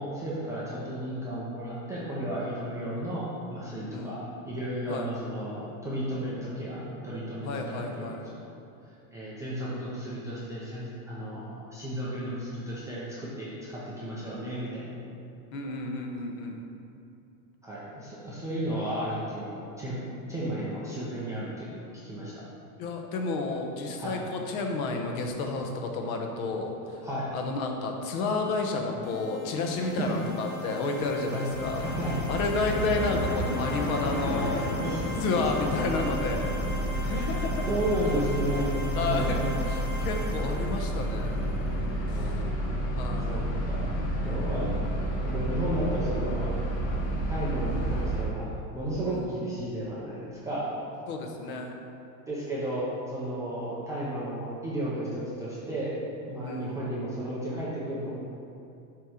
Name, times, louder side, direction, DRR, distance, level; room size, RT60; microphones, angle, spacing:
voice 1, 0.0-8.5 9.1-14.9 17.6-20.0 20.3-22.4 24.0-24.2 27.0-27.3 29.8-30.1 31.3-31.5 32.0-32.2 34.5-35.0 37.1-37.2 37.7-38.8 39.0-39.5 42.1-42.4 43.2-43.9 44.2-44.8 45.2-46.5 47.3-48.5 48.7-50.7 52.3-55.9 56.3-58.1, right 1 dB, 10° right, -9 dB, 0.3 m, -33 dB
voice 2, 7.4-8.3 15.5-16.6 22.8-27.0 27.3-31.9 32.3-34.7 35.2-36.5 37.0-37.6 38.9-41.5 42.9-43.5 44.2-44.8 49.1-49.2 51.1-51.8 56.4-56.8, left 3 dB, 65° left, 2 dB, 1.0 m, -31 dB
sound 1, 29.0-41.7, equal, 80° left, 1.4 m, -40 dB
sound 2, 31.5-48.2, equal, 45° left, 1.4 m, -30 dB
7.5 x 3.0 x 4.9 m, 2.7 s
supercardioid pair, 145°, 46 cm